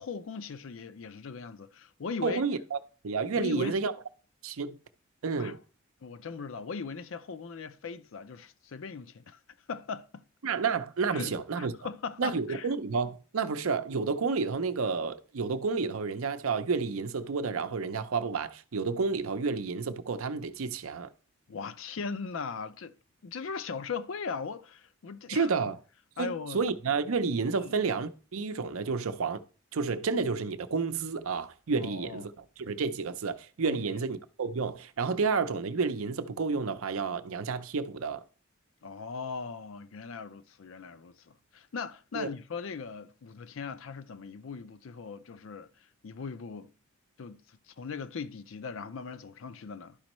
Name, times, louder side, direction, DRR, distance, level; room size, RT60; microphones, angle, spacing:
voice 1, 0.0-2.4 3.3-3.8 5.4-5.6 6.0-9.4 9.7-10.2 11.1-11.3 11.6-12.7 21.5-22.9 23.2-25.5 26.2-26.6 27.5-27.8 31.8-32.3 33.7-33.8 38.8-45.7 46.0-46.7 47.2-50.0, left 5 dB, 65° left, 0.5 m, -39 dB
voice 2, 2.2-2.8 3.0-3.9 4.4-4.8 5.2-5.6 10.4-11.7 12.2-21.1 25.3-25.8 26.2-29.4 29.7-38.2 42.1-42.3, right 4 dB, 75° right, 0.6 m, -30 dB
11.5 x 5.2 x 3.0 m
head